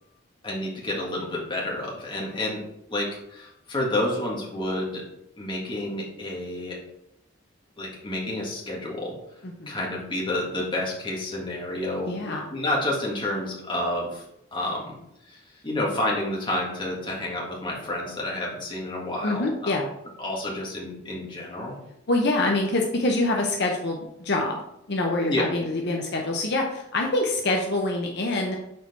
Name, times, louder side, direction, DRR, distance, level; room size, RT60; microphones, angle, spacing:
voice 1, 0.4-2.6 2.9-5.0 5.4-6.8 7.8-9.1 9.7-14.2 14.5-15.0 15.3-19.7 20.2-21.8 25.3-25.5, left 1 dB, 25° left, -3 dB, 1.7 m, -29 dB
voice 2, 12.1-12.4 19.2-19.9 22.1-24.6 24.9-28.6, left 2 dB, 55° left, 0 dB, 0.8 m, -25 dB
6.5 x 4.5 x 4.1 m, 0.80 s
head